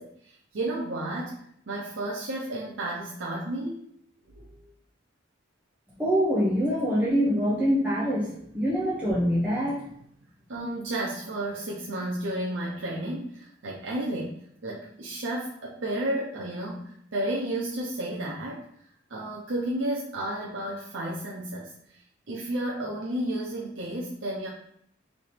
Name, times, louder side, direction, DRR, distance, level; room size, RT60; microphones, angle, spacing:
voice 1, 0.0-1.4 1.7-3.9 4.3-4.5 10.5-14.3 14.6-18.6 19.1-22.0 22.3-24.5, right 1 dB, 75° right, -4 dB, 0.7 m, -32 dB
voice 2, 6.0-9.8, equal, 10° right, -8 dB, 0.8 m, -25 dB
3.3 x 2.9 x 4.3 m, 0.70 s
head